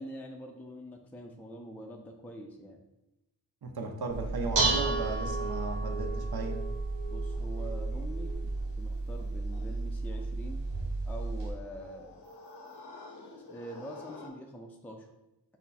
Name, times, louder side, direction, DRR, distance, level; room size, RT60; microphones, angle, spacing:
voice 1, 0.0-2.8 7.1-10.6 11.1-12.2 13.3-15.1, equal, 5° left, 1 dB, 0.5 m, -45 dB
voice 2, 3.6-6.6, right 3 dB, 60° right, 3 dB, 0.8 m, -36 dB
Dishes pots and pans, 4.1-11.5, right 3 dB, 90° right, 1.0 m, -32 dB
sound 1, 7.2-14.3, left 3 dB, 70° left, 0.9 m, -51 dB
5.9 x 2.1 x 4.1 m, 0.96 s
cardioid pair, 55°, 42 cm